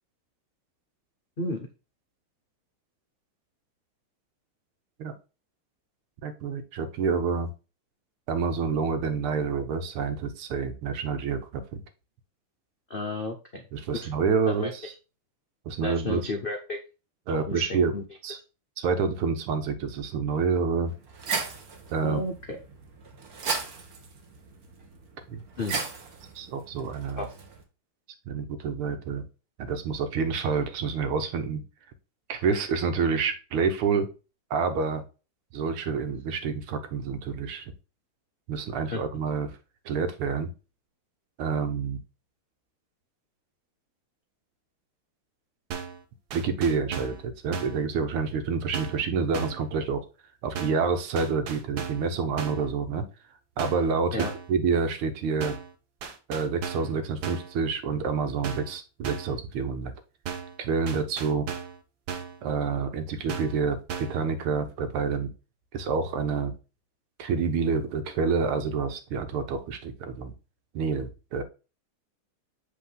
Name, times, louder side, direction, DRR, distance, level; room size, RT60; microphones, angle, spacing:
voice 1, 1.4-1.7 12.9-13.7 13.9-14.1 14.5-14.7 15.8-16.8 17.3-18.0 22.0-22.6 25.6-25.8 27.2-27.3 38.9-39.0 54.1-54.3, left 2 dB, 90° left, 2 dB, 0.4 m, -32 dB
voice 2, 6.2-7.5 8.3-11.8 13.7-14.9 15.7-16.2 17.3-17.9 18.2-18.4 18.8-20.9 21.9-22.2 25.3-25.4 26.4-27.3 28.3-29.2 29.6-31.6 32.3-34.1 34.5-35.0 35.5-37.7 38.5-39.5 39.9-40.5 41.4-42.0 46.3-50.0 50.4-53.0 53.6-55.6 56.3-59.9 60.6-61.5 62.4-65.3 65.7-66.5 67.2-70.3 70.7-71.4, right 5 dB, 90° right, 8 dB, 1.9 m, -28 dB
sound 1, 20.8-27.6, right 4 dB, 50° right, 1.5 m, -36 dB
sound 2, 45.7-46.0 46.3-47.2 47.5-47.8 48.7-49.1 49.3-49.7 50.6-50.9 51.2-52.1 52.4-52.7 53.6-53.9 54.2-54.5 55.4-55.7 56.0-56.9 57.2-57.5 58.4-58.8 59.0-59.4 60.3-60.6 60.9-61.8 62.1-62.4 63.3-63.6 63.9-64.2, right 7 dB, 70° right, 1.6 m, -36 dB
7.7 x 3.8 x 3.8 m, 0.32 s
omnidirectional pair, 2.3 m